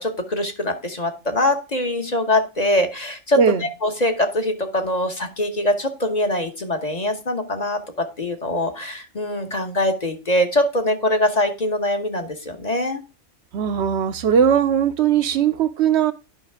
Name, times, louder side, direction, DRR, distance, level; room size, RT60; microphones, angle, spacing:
voice 1, 0.0-13.0, left 1 dB, 35° left, 1.1 m, -23 dB
voice 2, 13.5-16.1, right 8 dB, 70° right, 0.9 m, -19 dB
10.5 x 5.4 x 3.4 m
omnidirectional pair, 1.2 m